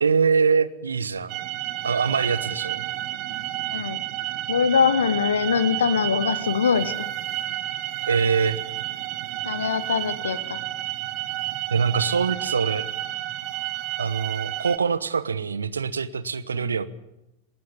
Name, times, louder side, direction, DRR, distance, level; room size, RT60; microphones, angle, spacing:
voice 1, 0.0-1.3 1.8-2.8 8.1-8.6 11.7-12.9 14.0-16.9, right 5 dB, 70° right, 16 dB, 1.0 m, -23 dB
sound 1, 1.3-14.8, right 15 dB, 40° right, 1.4 m, -31 dB
voice 2, 4.5-7.1 9.4-10.6 16.5-16.7, left 6 dB, 70° left, 15 dB, 1.2 m, -23 dB
19.5 x 18.5 x 8.4 m, 0.91 s
figure-of-eight pair, 90°, 0 cm